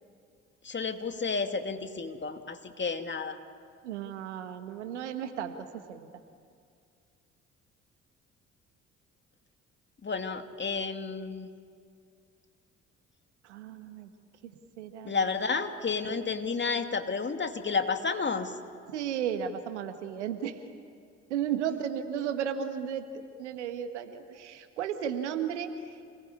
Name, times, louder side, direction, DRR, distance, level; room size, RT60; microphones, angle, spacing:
voice 1, 0.6-3.4 10.0-11.5 15.0-18.5, left 4 dB, 35° left, 7 dB, 2.4 m, -31 dB
voice 2, 3.8-6.1 13.4-14.1 14.4-14.5 14.8-15.3 18.9-20.6 21.3-26.0, right 8 dB, 85° right, 8 dB, 1.4 m, -34 dB
28.0 x 20.5 x 9.8 m, 2.2 s
hypercardioid pair, 45°, 34 cm